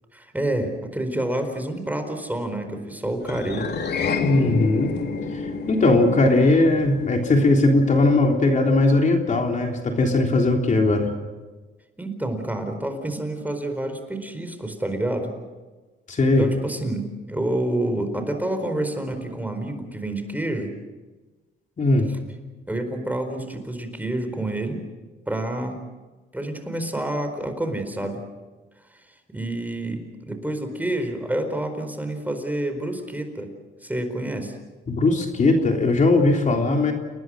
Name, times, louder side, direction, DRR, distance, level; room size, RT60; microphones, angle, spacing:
voice 1, 0.1-3.7 12.0-15.3 16.4-20.7 22.7-24.8 25.3-25.8 26.3-28.2 28.9-29.0 29.3-33.5 33.8-34.6, right 1 dB, 10° right, 7 dB, 4.4 m, -28 dB
sound 1, 3.2-7.8, left 5 dB, 55° left, 3.1 m, -29 dB
voice 2, 4.1-4.9 5.3-5.4 5.7-11.1 16.1-16.4 21.8-22.1 34.9-36.9, left 2 dB, 40° left, 2 dB, 3.4 m, -19 dB
30.0 x 19.5 x 6.4 m, 1.2 s
cardioid pair, 90°, 20 cm